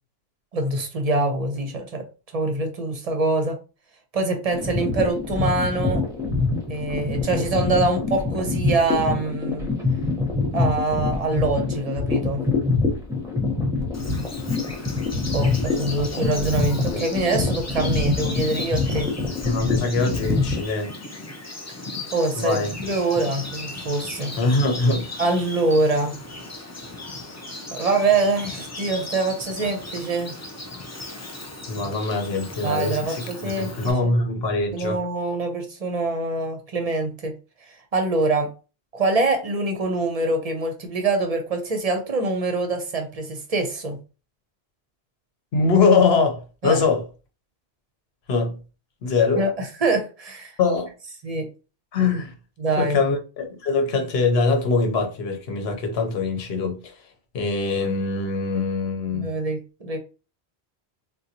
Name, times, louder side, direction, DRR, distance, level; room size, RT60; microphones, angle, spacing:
voice 1, 0.5-2.0 2.3-3.6 4.1-6.0 6.7-9.7 10.5-12.4 15.1-19.1 22.1-24.3 25.2-26.2 27.7-30.3 32.6-34.1 34.7-37.3 37.9-38.5 38.9-44.0 46.6-46.8 49.4-50.5 51.2-51.5 52.6-53.0 59.1-60.0, right 2 dB, 40° right, 0.7 m, -24 dB
sound 1, 4.5-20.6, left 3 dB, 5° right, 0.8 m, -25 dB
Bird vocalization bird call bird song, 13.9-33.9, left 2 dB, 25° left, 0.3 m, -37 dB
voice 2, 16.0-17.0 19.4-20.9 22.4-22.7 24.4-25.1 31.7-35.0 45.5-47.0 48.3-48.5 49.0-49.4 50.6-50.9 51.9-52.3 52.8-56.9 57.3-59.3, left 4 dB, 75° left, 1.0 m, -23 dB
3.8 x 2.2 x 2.8 m
omnidirectional pair, 1.1 m